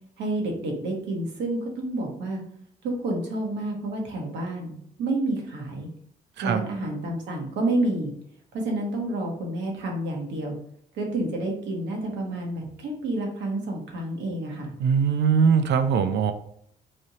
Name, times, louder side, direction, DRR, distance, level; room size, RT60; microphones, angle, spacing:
voice 1, 0.2-2.4 2.8-5.9 6.4-8.1 8.5-10.6 10.9-14.7, right 2 dB, 90° right, 0 dB, 1.0 m, -29 dB
voice 2, 14.8-16.3, right 6 dB, 75° right, 9 dB, 0.5 m, -21 dB
3.2 x 2.7 x 4.0 m, 0.70 s
cardioid pair, 75°, 18 cm